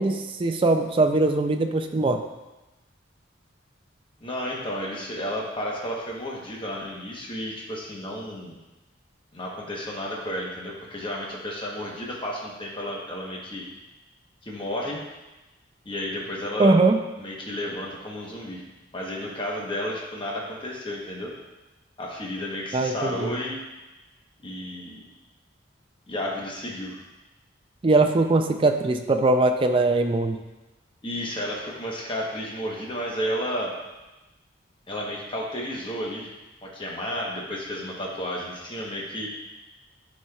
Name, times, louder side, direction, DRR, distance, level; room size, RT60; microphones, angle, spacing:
voice 1, 0.0-2.2 16.6-17.0 22.7-23.3 27.8-30.4, right 2 dB, 25° right, 6 dB, 0.4 m, -21 dB
voice 2, 4.2-8.6 9.3-13.6 14.4-15.0 15.8-16.7 17.2-18.6 18.9-21.3 22.0-23.6 24.4-25.0 26.1-27.0 31.0-33.7 34.9-36.3 36.6-39.3, equal, 25° left, -3 dB, 1.0 m, -32 dB
9.4 x 4.2 x 2.3 m, 1.1 s
head